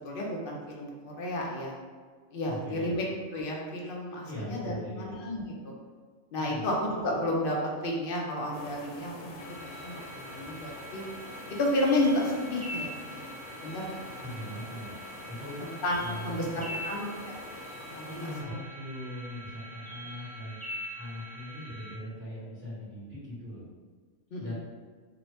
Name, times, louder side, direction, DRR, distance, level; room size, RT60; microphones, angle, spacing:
voice 1, 0.0-1.7 2.3-3.1 3.3-5.7 6.3-11.0 11.6-13.3 13.6-14.1 15.6-17.3 17.9-18.2 24.3-24.5, left 1 dB, 60° left, -2 dB, 0.5 m, -32 dB
voice 2, 2.5-3.0 4.2-5.2 6.4-6.7 14.2-14.9 15.3-15.6 16.0-16.4 16.7-16.9 18.1-20.6 20.9-23.6 24.4-24.5, equal, 10° right, -13 dB, 1.3 m, -40 dB
sound 1, 8.5-18.4, left 2 dB, 85° left, 1.1 m, -46 dB
sound 2, 9.4-21.9, equal, 15° left, 0.3 m, -43 dB
2.7 x 2.7 x 3.1 m, 1.5 s
omnidirectional pair, 1.6 m